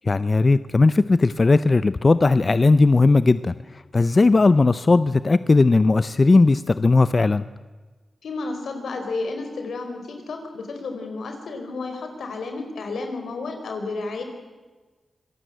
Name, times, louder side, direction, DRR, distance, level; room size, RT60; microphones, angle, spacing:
voice 1, 0.1-3.5 3.9-7.4, left 3 dB, 40° left, 14 dB, 0.6 m, -17 dB
voice 2, 8.2-14.2, left 3 dB, 85° left, 5 dB, 4.5 m, -31 dB
26.0 x 19.0 x 8.0 m, 1.3 s
cardioid pair, 70°, 0 cm